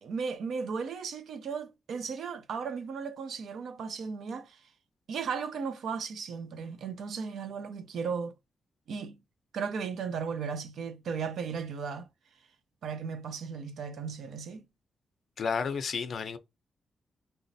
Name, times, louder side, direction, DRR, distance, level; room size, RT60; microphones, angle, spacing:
voice 1, 0.0-4.6 5.1-8.3 8.9-9.2 9.5-12.1 12.8-14.7, right 5 dB, 75° right, 0.6 m, -36 dB
voice 2, 15.4-16.4, left 5 dB, 50° left, 0.5 m, -31 dB
4.1 x 2.1 x 2.6 m
wide cardioid pair, 180°, 0 cm